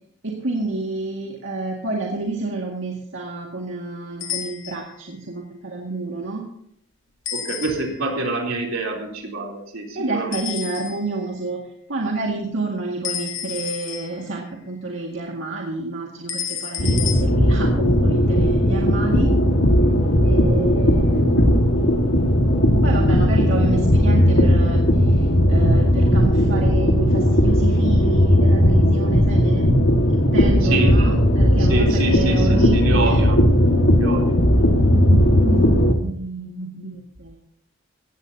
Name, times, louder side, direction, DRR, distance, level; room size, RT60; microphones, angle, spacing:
voice 1, 0.2-6.4 9.9-11.6 11.9-19.3 20.2-21.4 22.8-29.7 30.1-33.3 34.8-37.4, right 2 dB, 75° right, -1 dB, 2.0 m, -29 dB
sound 1, 4.2-5.0 7.3-8.1 10.3-11.2 13.0-14.5 16.3-17.2, left 9 dB, 65° left, 2.3 m, -31 dB
voice 2, 7.3-10.4 30.6-31.0 31.6-33.4 33.9-34.4, right 2 dB, 90° right, 1 dB, 3.5 m, -26 dB
sound 2, 16.8-35.9, equal, 85° left, 1.8 m, -17 dB
18.0 x 15.0 x 2.8 m, 0.70 s
head